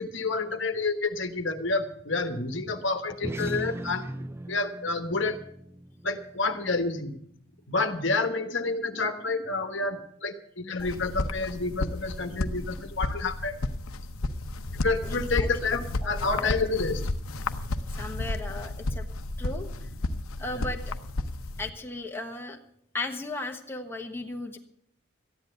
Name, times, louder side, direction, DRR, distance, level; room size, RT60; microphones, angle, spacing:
voice 1, 0.0-4.1 4.5-5.4 6.0-7.2 7.7-13.6 14.8-17.0 20.5-20.7, left 3 dB, 60° left, 7 dB, 1.3 m, -29 dB
sound 1, 3.1-7.9, right 1 dB, 10° right, 0.5 m, -39 dB
sound 2, 10.8-21.7, left 2 dB, 90° left, 0.8 m, -32 dB
voice 2, 16.0-16.5 17.9-19.1 19.4-19.9 20.4-21.0 21.6-22.6 22.9-24.6, left 2 dB, 10° left, 1 dB, 1.2 m, -36 dB
14.0 x 10.5 x 6.7 m, 0.66 s
head